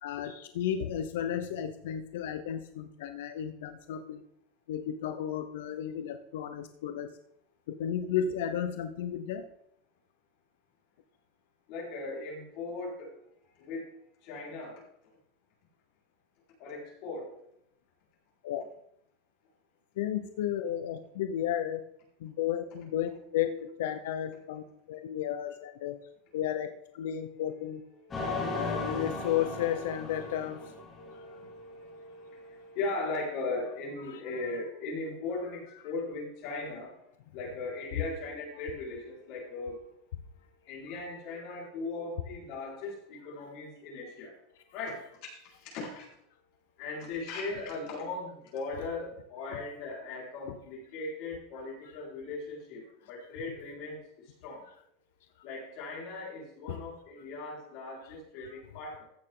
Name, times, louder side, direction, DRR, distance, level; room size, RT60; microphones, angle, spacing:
voice 1, 0.0-4.2 4.7-7.1 7.7-9.4 18.4-18.6 20.0-21.8 22.2-26.0 26.3-26.7 26.9-27.8 28.2-30.6 34.1-34.2 49.5-49.6 50.5-50.6 56.7-56.8, left 10 dB, 80° left, 8 dB, 0.8 m, -33 dB
voice 2, 11.7-13.1 13.6-13.9 14.2-14.8 16.6-17.3 28.0-30.7 30.9-36.9 37.3-40.0 40.6-44.3 44.7-46.1 46.8-54.6 55.4-59.0, left 3 dB, 45° left, -4 dB, 4.7 m, -39 dB
sound 1, 28.1-31.5, left 2 dB, 15° left, 2.6 m, -36 dB
15.0 x 6.9 x 3.8 m, 0.76 s
supercardioid pair, 175°, 0 cm